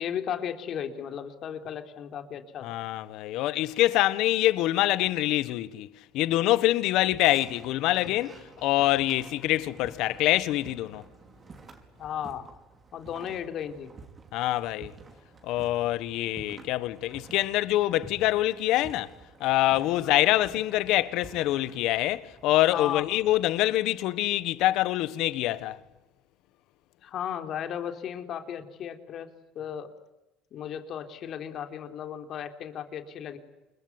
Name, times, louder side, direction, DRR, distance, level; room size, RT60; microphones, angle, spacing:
voice 1, 0.0-2.8 12.0-12.5 12.9-13.9 20.0-20.2 22.7-23.1 27.0-29.3 29.6-29.9 30.5-33.4, left 9 dB, 55° left, 3.7 m, -35 dB
voice 2, 2.6-5.9 6.1-11.0 14.3-14.9 15.4-19.1 19.4-25.8, left 15 dB, 70° left, 1.4 m, -25 dB
sound 1, 7.1-23.6, right 3 dB, 35° right, 5.3 m, -50 dB
28.0 x 21.5 x 9.6 m
supercardioid pair, 85°, 0 cm